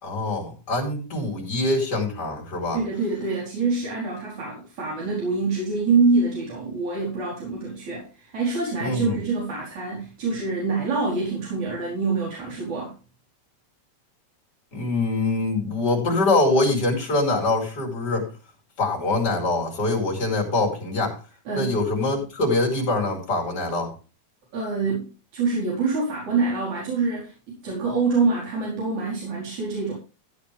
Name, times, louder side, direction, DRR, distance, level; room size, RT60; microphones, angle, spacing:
voice 1, 0.0-2.8 8.8-9.2 14.7-18.3 18.8-21.2 21.5-23.9, left 2 dB, 35° left, 0 dB, 5.1 m, -24 dB
voice 2, 2.7-12.9 21.5-21.7 24.5-25.1 25.3-27.3 27.6-29.9, right 4 dB, 80° right, -4 dB, 6.0 m, -25 dB
15.5 x 9.6 x 3.5 m, 0.32 s
omnidirectional pair, 3.3 m